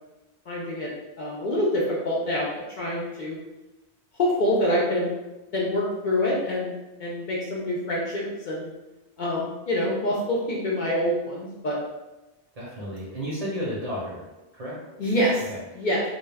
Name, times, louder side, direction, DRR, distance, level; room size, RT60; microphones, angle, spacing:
voice 1, 0.5-0.9 1.2-3.4 4.2-5.1 5.5-6.7 7.0-8.7 9.2-11.8 15.0-15.5 15.7-16.0, left 1 dB, 55° left, -4 dB, 0.6 m, -26 dB
voice 2, 12.6-14.3 14.5-14.8 15.5-15.6, equal, 45° right, -6 dB, 0.6 m, -32 dB
2.2 x 2.2 x 3.2 m, 1.0 s
omnidirectional pair, 1.1 m